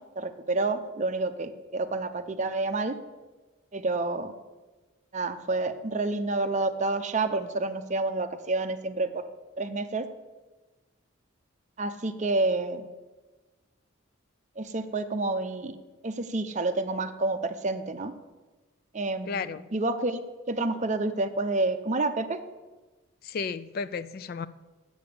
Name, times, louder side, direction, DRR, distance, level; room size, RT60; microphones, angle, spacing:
voice 1, 0.2-3.0 3.7-4.3 5.1-9.2 9.6-10.1 11.8-12.8 14.6-15.7 16.0-18.1 18.9-20.2 20.5-22.4, right 2 dB, 35° right, 9 dB, 0.7 m, -29 dB
voice 2, 19.2-19.6 23.2-24.5, left 5 dB, 45° left, 15 dB, 0.3 m, -33 dB
7.8 x 7.0 x 8.4 m, 1.2 s
head